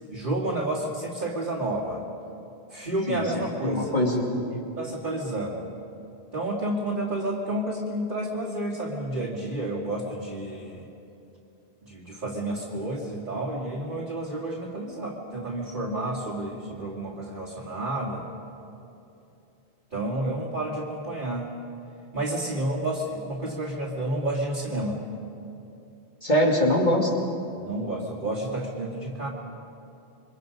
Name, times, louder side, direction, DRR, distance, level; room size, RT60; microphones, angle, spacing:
voice 1, 0.1-2.0 2.7-4.0 4.8-5.7 6.3-10.9 11.8-18.3 19.9-21.5 22.1-25.0 27.5-29.3, right 1 dB, 40° right, -7 dB, 2.5 m, -30 dB
voice 2, 3.1-4.4 26.2-27.1, equal, 40° left, -1 dB, 3.2 m, -23 dB
28.5 x 24.0 x 5.3 m, 2.9 s
omnidirectional pair, 1.2 m